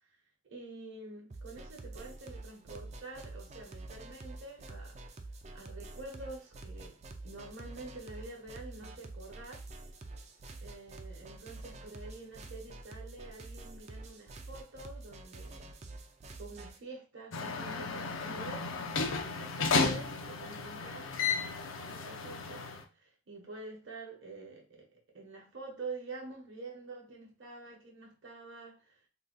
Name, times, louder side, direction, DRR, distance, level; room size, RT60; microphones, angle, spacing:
voice 1, 0.4-5.0 5.5-7.0 7.2-9.7 10.6-15.8 16.4-21.1 21.8-24.9 25.1-29.1, right 3 dB, 55° right, 0.9 m, -47 dB
sound 1, 1.3-16.8, right 2 dB, 30° right, 0.4 m, -47 dB
sound 2, 17.3-22.8, left 4 dB, 65° left, 0.5 m, -33 dB
2.7 x 2.3 x 3.7 m
head